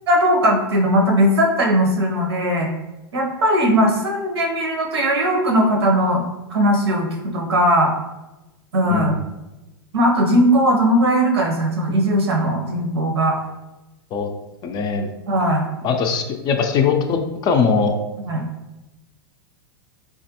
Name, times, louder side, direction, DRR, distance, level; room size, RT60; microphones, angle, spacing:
voice 1, 0.1-2.7 3.1-6.2 6.5-7.1 7.3-7.9 8.7-9.1 9.9-13.4 15.3-15.7 18.2-18.4, equal, 85° right, 1 dB, 0.8 m, -18 dB
voice 2, 14.6-15.1 15.8-17.9, left 5 dB, 30° left, 4 dB, 0.4 m, -20 dB
3.2 x 2.4 x 2.8 m, 1.0 s
hypercardioid pair, 115°, 13 cm